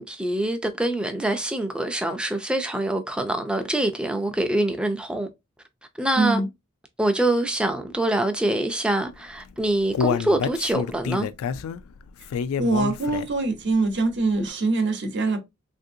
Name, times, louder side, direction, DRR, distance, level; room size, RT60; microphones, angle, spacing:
voice 1, 0.0-5.3 6.0-6.4 7.0-11.3, right 1 dB, 5° right, 0.4 m, -25 dB
voice 2, 6.2-6.5 12.6-15.4, right 3 dB, 55° right, 0.8 m, -23 dB
Human voice, 9.3-13.5 13.9-14.0 14.5-14.6, left 6 dB, 85° left, 0.3 m, -28 dB
3.4 x 2.6 x 2.6 m
head